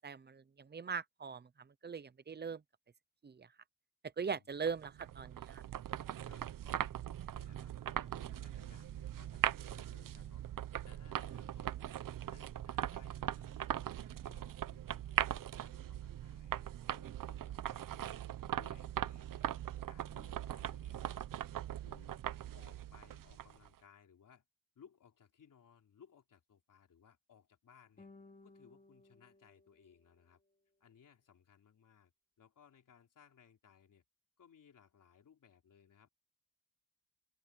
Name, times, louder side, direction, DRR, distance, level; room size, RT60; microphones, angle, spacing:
voice 1, 0.0-2.6 3.2-3.5 4.2-5.6, right 6 dB, 30° right, 0.6 m, -41 dB
sound 1, 4.7-23.7, right 11 dB, 80° right, 0.7 m, -40 dB
voice 2, 6.3-6.9 7.3-11.9 12.3-19.4 19.9-21.2 21.8-24.4 24.8-28.1 28.4-30.4 30.8-32.1 32.4-34.0 34.4-36.1, left 7 dB, 75° left, 3.8 m, -64 dB
sound 2, 28.0-30.5, left 3 dB, 25° left, 2.7 m, -61 dB
open air
wide cardioid pair, 170°, 32 cm